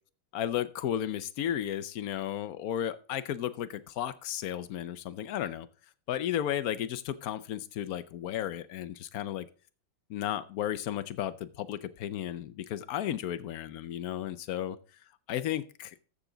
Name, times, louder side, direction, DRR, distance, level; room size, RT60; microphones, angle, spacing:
voice 1, 0.3-5.7 6.1-9.5 10.1-14.8 15.3-15.9, left 11 dB, 65° left, 13 dB, 0.9 m, -34 dB
13.5 x 6.9 x 3.9 m, 0.39 s
omnidirectional pair, 2.1 m